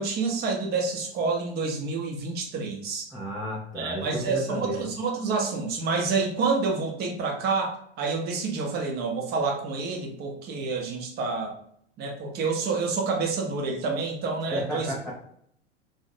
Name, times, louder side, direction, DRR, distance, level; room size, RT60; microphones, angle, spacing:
voice 1, 0.0-3.1 3.7-11.5 12.0-14.9, right 4 dB, 30° right, 1 dB, 0.6 m, -28 dB
voice 2, 3.1-4.9 14.5-15.1, equal, ahead, -7 dB, 0.3 m, -32 dB
2.5 x 2.0 x 2.6 m, 0.68 s
figure-of-eight pair, 90°, 34 cm